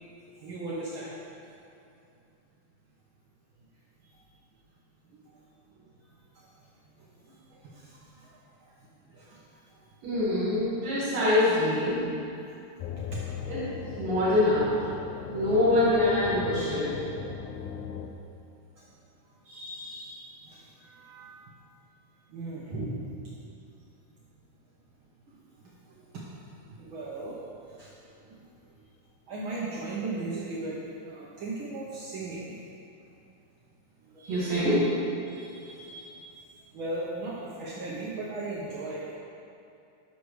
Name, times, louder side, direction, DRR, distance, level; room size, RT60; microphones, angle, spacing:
voice 1, 0.4-1.2 7.3-8.2 9.1-9.4 13.2-13.3 19.4-21.4 22.3-22.8 25.9-26.0 26.7-27.4 27.8-27.9 28.3-28.4 29.3-32.5 34.1-34.6 35.3-36.2 36.7-39.1, right 2 dB, 60° right, -6 dB, 1.3 m, -38 dB
voice 2, 10.0-12.0 13.5-13.6 14.0-14.7 15.3-17.0 22.7-22.8 34.3-34.9, left 1 dB, 85° right, -12 dB, 4.7 m, -24 dB
sound 1, 12.8-18.1, left 7 dB, 80° left, 1.8 m, -38 dB
19.0 x 6.8 x 3.3 m, 2.6 s
omnidirectional pair, 3.8 m